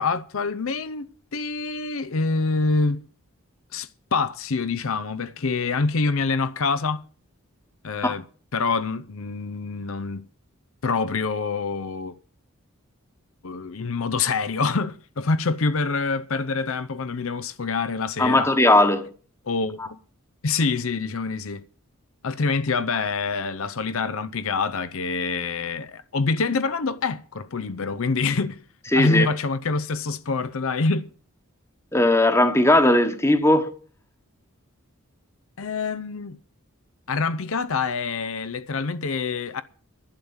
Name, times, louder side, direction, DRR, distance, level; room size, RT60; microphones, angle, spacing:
voice 1, 0.0-3.0 3.7-7.0 7.8-8.2 8.5-10.3 10.8-12.1 13.4-18.5 19.5-20.0 20.4-21.7 22.2-28.6 28.9-31.1 35.6-36.4 37.1-39.6, left 4 dB, 70° left, 0.7 m, -26 dB
voice 2, 18.2-19.1 28.9-29.3 31.9-33.7, left 1 dB, 10° left, 1.2 m, -18 dB
11.5 x 10.5 x 7.2 m
head